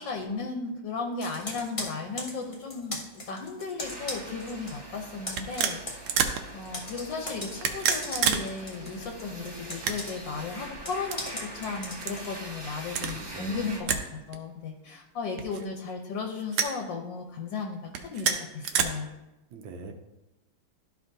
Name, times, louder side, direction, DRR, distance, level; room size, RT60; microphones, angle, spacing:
voice 1, 0.0-5.8 6.5-19.1, left 4 dB, 70° left, 2 dB, 1.4 m, -35 dB
Computer keyboard, 1.2-4.8 5.1-12.3, left 1 dB, 25° left, 0.7 m, -39 dB
sound 1, 3.8-13.8, right 1 dB, 35° right, 0.4 m, -43 dB
sound 2, 4.2-4.4 5.3-6.4 7.5-8.4 8.7-8.8 9.6-10.3 11.0-11.2 12.0-12.2 12.9-13.2 13.9-14.1 14.3-14.4 15.4-15.9 16.5-16.8 17.9-18.8, right 7 dB, 90° right, 1.5 m, -28 dB
voice 2, 13.1-13.8 19.5-19.9, right 4 dB, 75° right, 4 dB, 1.4 m, -43 dB
12.5 x 5.1 x 2.7 m, 0.99 s
omnidirectional pair, 2.3 m